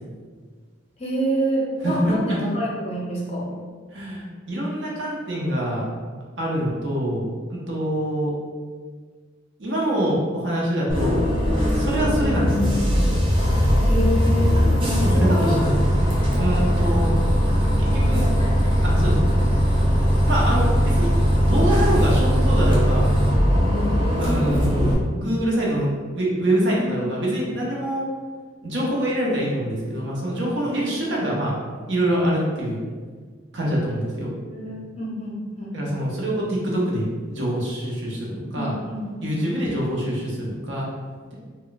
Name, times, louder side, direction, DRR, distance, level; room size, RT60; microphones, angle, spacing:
voice 1, 1.0-3.5 13.8-15.6 17.8-18.2 26.7-27.1 30.7-31.2 34.5-35.8 38.6-39.6, equal, 35° left, -5 dB, 0.6 m, -28 dB
voice 2, 1.8-2.2 3.9-5.8 6.4-8.3 9.6-11.2 11.7-12.8 15.0-15.8 16.3-17.1 17.8-18.3 18.8-19.3 20.2-21.1 21.4-23.1 24.2-24.8 25.1-28.1 28.6-31.6 31.9-32.8 33.5-34.3 35.7-38.8 39.2-40.9, right 1 dB, 60° right, -4 dB, 0.7 m, -25 dB
Bus, 10.9-24.9, equal, 25° right, 0.6 m, -19 dB
2.2 x 2.2 x 3.9 m, 1.6 s
head